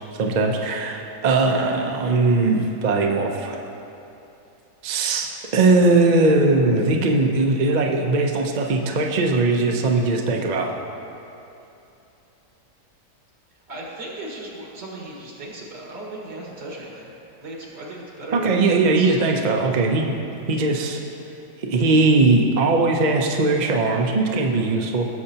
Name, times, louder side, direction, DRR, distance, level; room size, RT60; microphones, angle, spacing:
voice 1, 0.2-3.6 4.8-5.3 5.5-10.7 18.3-20.1 20.5-21.0 21.7-25.1, right 3 dB, 70° right, 1 dB, 0.4 m, -19 dB
voice 2, 13.7-17.1 17.4-19.2, right 1 dB, 90° right, -4 dB, 2.4 m, -36 dB
15.5 x 6.7 x 2.8 m, 2.9 s
omnidirectional pair, 1.8 m